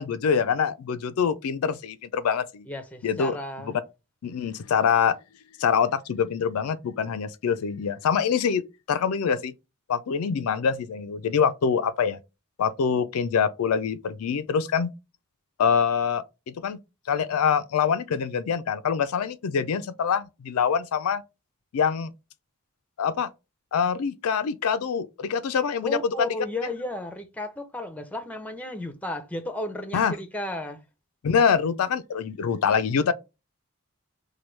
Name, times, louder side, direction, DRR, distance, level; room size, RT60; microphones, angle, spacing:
voice 1, 0.0-2.7 3.0-3.4 3.6-3.7 4.2-5.2 5.6-8.6 8.9-9.5 9.9-12.2 12.6-14.9 15.6-16.8 17.1-21.2 21.7-22.1 23.0-23.3 23.7-26.3 29.9-30.2 31.2-33.1, left 6 dB, 90° left, 0.4 m, -25 dB
voice 2, 2.7-3.7 25.8-30.8, left 1 dB, 5° left, 0.5 m, -34 dB
4.5 x 2.2 x 3.2 m
head